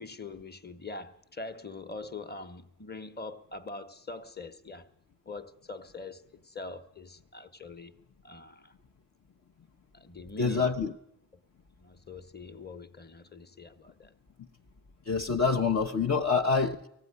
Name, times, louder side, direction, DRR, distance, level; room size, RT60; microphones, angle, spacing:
voice 1, 0.0-4.9 5.2-7.9 8.2-8.7 9.9-10.7 11.8-14.1, left 3 dB, 30° left, 1.2 m, -43 dB
voice 2, 10.4-10.9 15.1-16.9, left 5 dB, 55° left, 0.9 m, -26 dB
18.5 x 15.0 x 9.6 m
wide cardioid pair, 75°, 33 cm